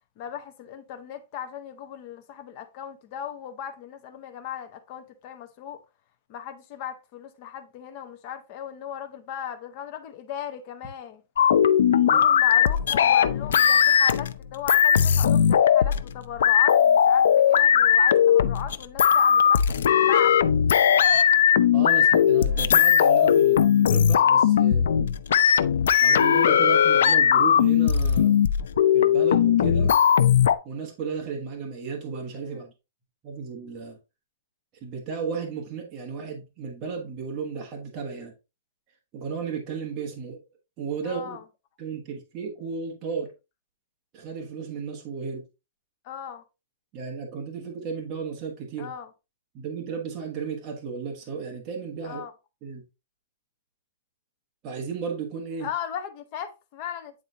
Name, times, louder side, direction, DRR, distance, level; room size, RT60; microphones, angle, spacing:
voice 1, 0.2-5.8 6.3-11.2 12.1-19.6 20.0-20.4 32.4-32.6 41.0-41.4 46.0-46.4 48.8-49.1 52.0-52.3 55.6-57.1, left 9 dB, 30° left, 0.7 m, -37 dB
sound 1, 11.4-14.3 14.7-16.1 16.4-30.6, left 8 dB, 70° left, 0.4 m, -19 dB
voice 2, 11.9-12.2 21.7-24.9 26.0-28.4 28.9-29.9 30.6-32.7 33.2-34.0 34.8-38.3 39.1-40.4 40.8-41.4 41.8-43.3 44.1-45.4 46.9-48.9 49.5-52.2 52.6-52.8 54.6-55.7, right 5 dB, 20° right, 1.2 m, -34 dB
8.6 x 4.0 x 2.8 m
hypercardioid pair, 175°, 0 cm